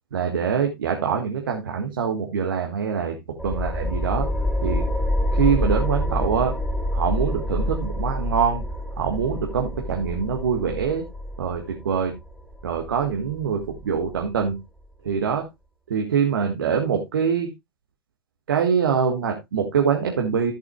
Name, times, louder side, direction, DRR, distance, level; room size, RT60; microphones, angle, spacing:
voice 1, 0.1-3.2 3.4-4.3 4.6-4.8 5.3-6.5 6.9-8.6 9.0-11.0 11.4-12.1 12.6-14.6 15.0-15.5 15.9-17.5 18.5-20.5, right 7 dB, 70° right, 2 dB, 1.6 m, -24 dB
sound 1, 3.4-14.4, left 1 dB, ahead, 2.7 m, -27 dB
14.0 x 8.0 x 2.3 m, 0.19 s
figure-of-eight pair, 90°, 12 cm